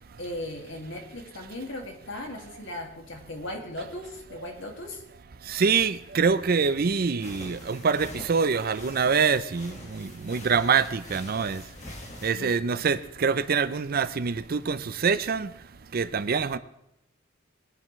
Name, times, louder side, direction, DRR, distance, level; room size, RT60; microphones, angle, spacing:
voice 1, 0.2-5.0 12.4-12.9, left 1 dB, 70° left, 2.3 m, -38 dB
voice 2, 5.4-11.7 12.2-15.5 15.9-16.6, right 5 dB, 50° right, 0.5 m, -25 dB
sound 1, 7.2-12.3, left 1 dB, 40° left, 1.7 m, -44 dB
20.5 x 11.0 x 3.2 m
head